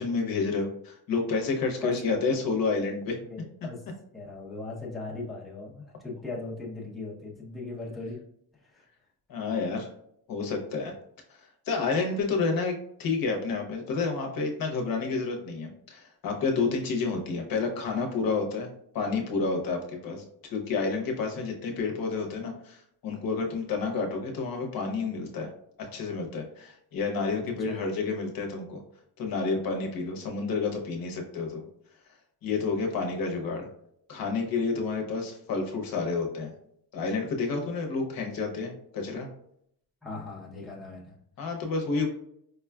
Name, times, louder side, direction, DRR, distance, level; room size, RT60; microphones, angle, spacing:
voice 1, 0.0-3.2 9.3-9.9 10.3-10.9 11.7-18.7 18.9-25.5 25.8-28.8 29.2-31.6 32.4-33.7 34.1-36.5 36.9-39.3 41.4-42.1, left 4 dB, 60° left, 2 dB, 0.8 m, -30 dB
voice 2, 1.8-2.4 3.2-3.8 4.1-8.2 8.5-8.8 9.4-9.5 21.6-22.0 27.4-27.8 40.0-41.2, left 3 dB, ahead, -5 dB, 0.7 m, -39 dB
4.9 x 2.3 x 2.2 m, 0.70 s
cardioid pair, 135°, 39 cm